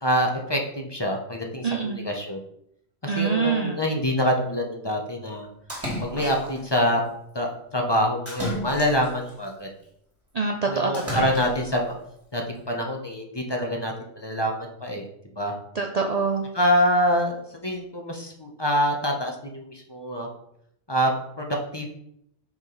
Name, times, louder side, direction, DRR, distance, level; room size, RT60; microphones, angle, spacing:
voice 1, 0.0-2.4 3.0-5.5 6.0-7.0 7.3-9.7 10.7-11.9 12.3-15.1 15.4-15.5 16.5-20.3 20.9-21.9, equal, 25° left, 1 dB, 0.7 m, -25 dB
voice 2, 1.6-2.1 3.1-3.8 10.3-11.3 15.8-16.5, right 5 dB, 80° right, 2 dB, 0.3 m, -25 dB
Splash splatter, 5.7-6.7 8.3-9.3 10.9-11.8, equal, 10° right, 1.8 m, -32 dB
5.8 x 4.8 x 3.9 m, 0.76 s
omnidirectional pair, 1.4 m